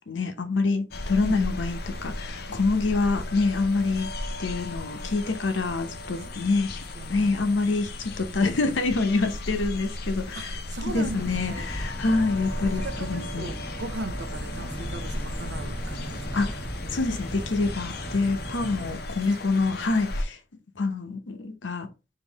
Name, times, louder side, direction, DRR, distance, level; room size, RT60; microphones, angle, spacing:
voice 1, 0.1-4.1 4.4-6.8 7.1-10.6 10.9-13.5 16.3-16.6 16.9-20.4 20.8-21.9, left 3 dB, 85° left, 0.8 m, -26 dB
sound 1, 0.9-20.2, left 1 dB, 55° left, 0.5 m, -36 dB
voice 2, 7.0-7.8 10.3-11.7 12.7-16.5 19.6-19.7, right 2 dB, 70° right, 0.6 m, -38 dB
sound 2, 10.9-18.9, equal, 10° left, 0.6 m, -37 dB
3.7 x 2.7 x 4.0 m
head